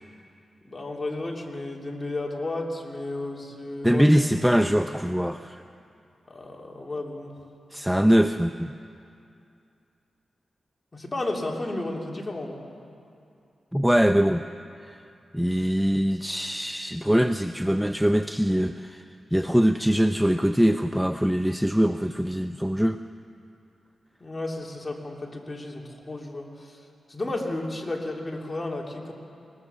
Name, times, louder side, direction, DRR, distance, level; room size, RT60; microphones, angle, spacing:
voice 1, 0.6-4.1 6.3-7.3 10.9-12.6 24.2-29.1, left 2 dB, 25° left, 0 dB, 2.9 m, -33 dB
voice 2, 3.8-5.6 7.7-8.7 13.7-14.4 14.8-15.0 15.3-19.1 19.3-23.0, equal, 5° right, 8 dB, 0.5 m, -22 dB
22.0 x 20.0 x 6.9 m, 2.6 s
wide cardioid pair, 95°, 0 cm